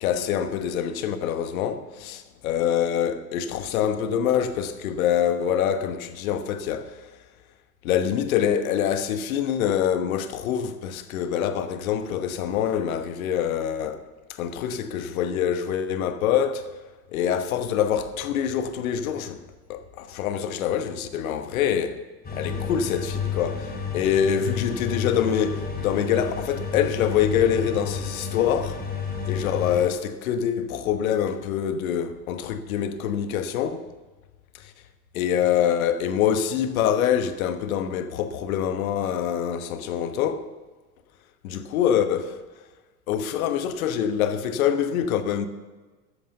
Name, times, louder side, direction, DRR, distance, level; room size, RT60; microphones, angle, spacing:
voice 1, 0.0-7.0 7.8-14.1 14.4-16.6 17.1-19.4 19.7-22.0 22.3-28.8 29.3-33.9 35.1-40.5 41.4-42.4 43.1-45.5, left 9 dB, 65° left, 1.3 m, -25 dB
sound 1, 22.2-29.9, left 6 dB, 20° left, 3.7 m, -31 dB
13.5 x 8.6 x 7.0 m
figure-of-eight pair, 85°, 45 cm